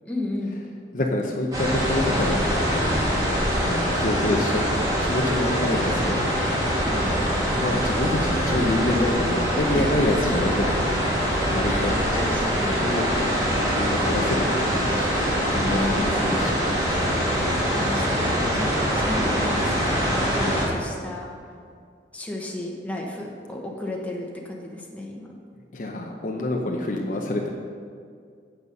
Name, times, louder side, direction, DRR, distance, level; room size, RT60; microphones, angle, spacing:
voice 1, 0.0-0.6 6.7-7.2 9.7-9.9 11.6-13.0 15.7-16.7 17.5-21.2 22.1-25.3, left 1 dB, 10° left, -2 dB, 1.2 m, -33 dB
voice 2, 0.9-3.1 3.6-4.7 5.0-6.3 7.6-11.0 11.5-12.0 12.8-13.4 13.7-15.0 15.5-16.6 25.7-27.5, left 1 dB, 50° left, 1 dB, 0.8 m, -27 dB
sound 1, 1.5-20.7, equal, 20° right, 2.2 m, -24 dB
8.2 x 8.1 x 5.4 m, 2.2 s
head